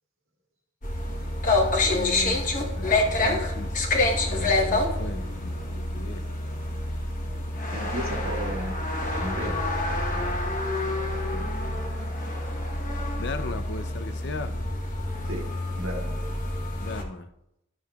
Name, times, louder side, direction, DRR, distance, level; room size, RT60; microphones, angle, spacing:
sound 1, 0.8-17.0, left 2 dB, 40° left, 1.0 m, -27 dB
voice 1, 1.8-3.8 4.3-6.3 11.1-11.7 13.2-14.6 16.7-17.3, left 3 dB, 55° left, 10 dB, 0.5 m, -38 dB
voice 2, 7.7-8.8 9.2-9.6 15.3-15.5 15.7-16.2, equal, 90° right, 0 dB, 1.6 m, -34 dB
12.0 x 6.4 x 2.3 m, 0.83 s
head